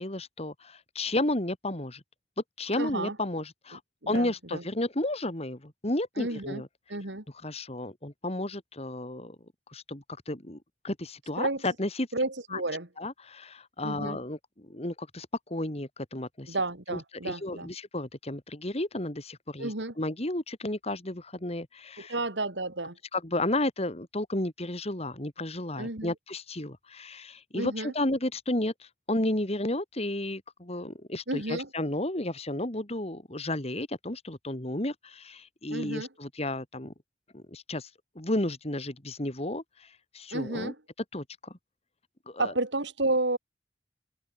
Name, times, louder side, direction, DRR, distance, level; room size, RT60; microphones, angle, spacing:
voice 1, 0.0-2.0 2.6-3.8 4.1-6.7 7.4-9.4 9.7-10.6 10.8-12.1 12.5-12.6 13.0-16.6 16.9-19.7 20.0-22.1 23.1-36.9 37.3-37.9 38.1-40.7 41.1-41.5 42.3-42.5, left 1 dB, 35° left, 3.0 m, -32 dB
voice 2, 2.8-3.2 4.0-4.6 6.2-6.6 6.9-7.2 11.4-11.6 12.1-12.9 13.8-14.2 16.5-17.7 19.6-19.9 22.0-23.0 25.8-26.1 27.5-27.9 31.3-31.7 35.7-36.1 40.3-40.8 42.4-43.4, right 2 dB, 80° right, 4.0 m, -31 dB
head